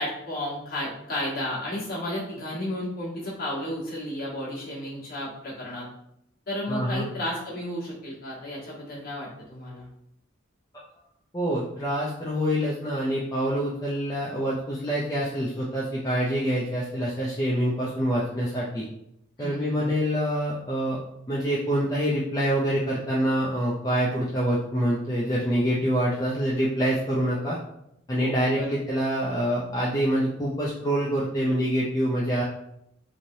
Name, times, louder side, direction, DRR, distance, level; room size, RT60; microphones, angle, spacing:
voice 1, 0.0-5.9 6.5-9.9 19.4-19.9 28.2-28.7, left 1 dB, 45° left, -7 dB, 1.2 m, -33 dB
voice 2, 6.7-7.1 11.3-18.8 19.4-21.0 21.3-27.6 28.1-32.4, equal, 15° left, -6 dB, 0.4 m, -26 dB
3.2 x 2.6 x 2.7 m, 0.77 s
head